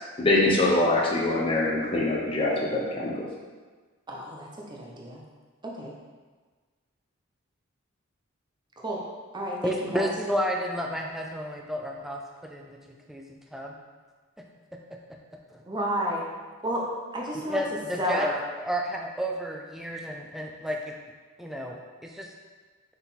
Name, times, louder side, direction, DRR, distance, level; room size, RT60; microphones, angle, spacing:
voice 1, 0.2-3.1, left 2 dB, 25° left, -4 dB, 0.8 m, -23 dB
voice 2, 4.1-5.2 5.6-5.9 8.8-9.0 9.3-10.1 15.7-16.3 16.6-16.9 17.1-17.6 18.0-18.3, equal, 20° right, -2 dB, 0.7 m, -31 dB
voice 3, 9.6-13.7 15.5-15.6 17.3-18.3 18.6-21.0 21.4-22.3, equal, ahead, 0 dB, 0.4 m, -31 dB
5.8 x 4.0 x 4.1 m, 1.4 s
head